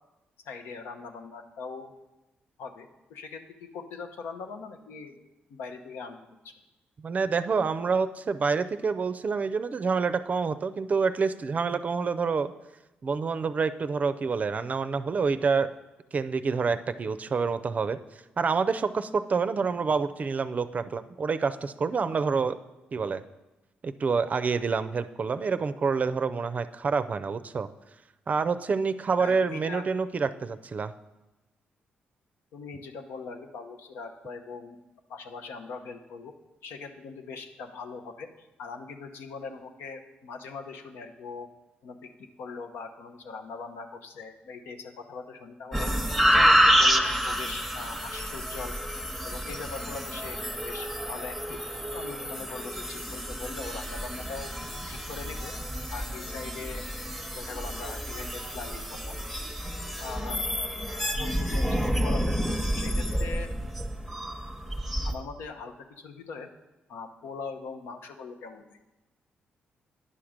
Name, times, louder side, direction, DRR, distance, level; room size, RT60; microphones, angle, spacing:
voice 1, 0.4-1.9 2.6-5.2 5.5-6.2 6.4-6.5 29.2-29.9 32.5-34.8 35.1-36.4 36.6-41.5 41.8-45.9 46.3-48.8 49.2-51.6 51.9-54.5 54.9-55.5 55.9-56.9 57.3-59.2 60.0-60.4 61.1-62.4 62.7-63.5 65.0-66.5 66.9-68.8, left 4 dB, 85° left, 6 dB, 0.8 m, -41 dB
voice 2, 7.0-12.5 13.0-15.7 16.1-18.0 18.4-22.6 22.9-23.2 23.8-27.7 28.3-30.9, right 5 dB, 45° right, 12 dB, 0.4 m, -27 dB
sound 1, 45.7-65.1, equal, ahead, 0.9 m, -28 dB
9.9 x 5.9 x 5.0 m, 1.0 s
cardioid pair, 75°, 4 cm